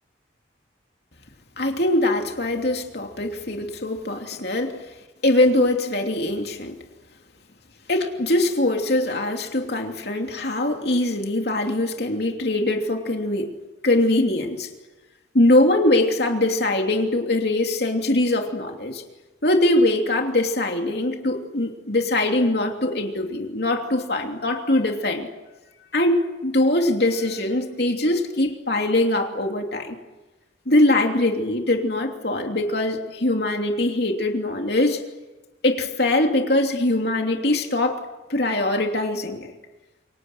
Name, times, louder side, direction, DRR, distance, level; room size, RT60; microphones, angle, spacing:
voice 1, 1.6-4.8 5.2-6.8 7.9-13.5 13.8-14.7 15.3-19.0 19.4-25.3 25.9-30.0 30.7-35.0 35.6-38.0 38.3-39.5, left 1 dB, 60° left, 3 dB, 3.0 m, -22 dB
28.5 x 25.5 x 7.9 m, 1.1 s
head